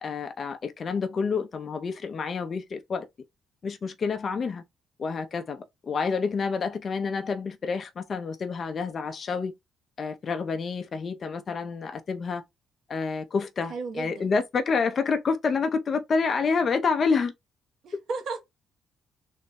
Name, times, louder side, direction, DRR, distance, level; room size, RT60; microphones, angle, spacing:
voice 1, 0.0-3.1 3.6-4.6 5.0-9.5 10.0-12.4 12.9-17.3, left 5 dB, 45° left, 0.5 m, -28 dB
voice 2, 13.7-14.3 17.8-18.4, right 4 dB, 65° right, 1.0 m, -34 dB
3.1 x 2.1 x 4.1 m
cardioid pair, 90°, 0 cm